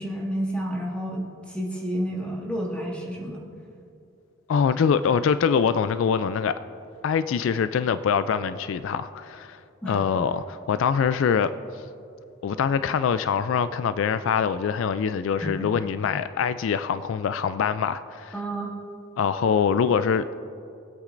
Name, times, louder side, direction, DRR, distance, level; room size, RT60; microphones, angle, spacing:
voice 1, 0.0-3.5 9.8-10.0 15.4-15.7 18.3-18.7, equal, 5° left, -4 dB, 1.6 m, -30 dB
voice 2, 4.5-6.5 7.0-9.6 9.9-11.8 12.4-18.3 19.2-20.4, left 6 dB, 70° left, 12 dB, 0.3 m, -24 dB
20.0 x 8.2 x 2.5 m, 2.6 s
head